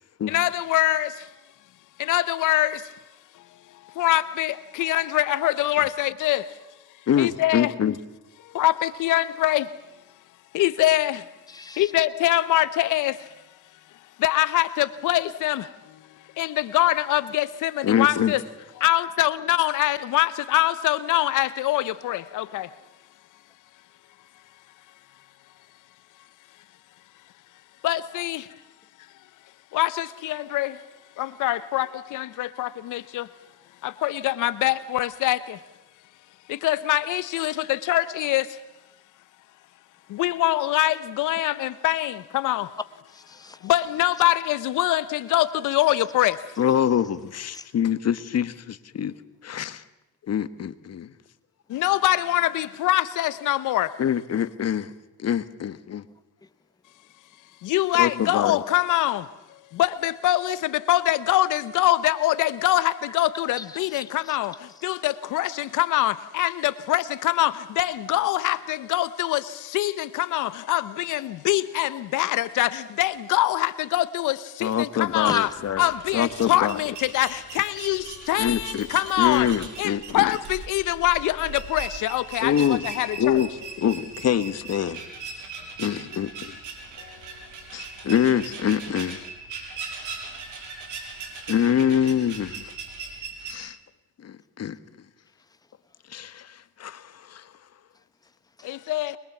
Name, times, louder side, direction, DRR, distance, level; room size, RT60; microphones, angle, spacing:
voice 1, 0.3-1.1 2.0-2.8 4.0-6.4 7.2-7.7 8.5-9.7 10.5-11.2 11.8-13.2 14.2-15.7 16.4-18.4 18.8-22.7 27.8-28.4 29.7-30.7 31.2-33.3 33.8-35.6 36.5-38.5 40.1-42.7 43.6-46.4 51.7-53.9 57.6-59.2 59.7-64.5 64.8-75.5 75.8-79.5 79.8-83.4 98.6-99.2, left 15 dB, 85° left, 0.9 m, -24 dB
voice 2, 7.1-7.9 17.8-18.3 46.6-49.1 49.4-49.8 50.3-51.1 54.0-54.9 55.2-56.0 57.9-58.6 74.6-75.8 76.1-76.8 78.4-78.9 79.2-80.3 82.4-82.8 83.2-83.5 83.8-85.0 85.8-86.6 87.7-89.2 91.5-92.7 93.4-93.8 94.2-94.8 96.1-97.4, left 9 dB, 55° left, 1.4 m, -25 dB
voice 3, 11.5-11.9 42.8-43.7 47.5-47.7 56.4-56.5 63.1-63.2 63.6-64.4 64.7-64.9 75.3-75.6 85.6-85.7 86.8-87.1 90.0-90.2 93.1-93.2 95.4-95.6 97.9-98.3 98.6-98.7, left 3 dB, 10° left, 1.2 m, -39 dB
sound 1, 75.0-93.5, right 5 dB, 75° right, 6.1 m, -39 dB
24.5 x 22.0 x 7.2 m
cardioid pair, 90°, 30 cm